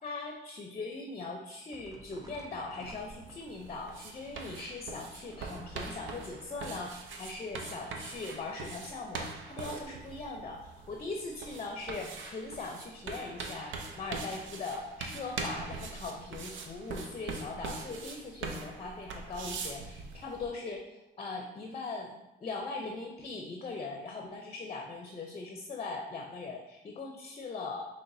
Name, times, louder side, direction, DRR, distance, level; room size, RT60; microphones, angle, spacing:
voice 1, 0.0-27.8, left 3 dB, 30° left, 2 dB, 0.6 m, -40 dB
sound 1, 1.7-3.8 5.2-6.0 7.6-8.3, right 1 dB, 15° right, 0.5 m, -54 dB
sound 2, 2.8-20.5, right 4 dB, 75° right, 0.6 m, -42 dB
5.8 x 3.2 x 2.6 m, 0.93 s
cardioid pair, 90°, 20 cm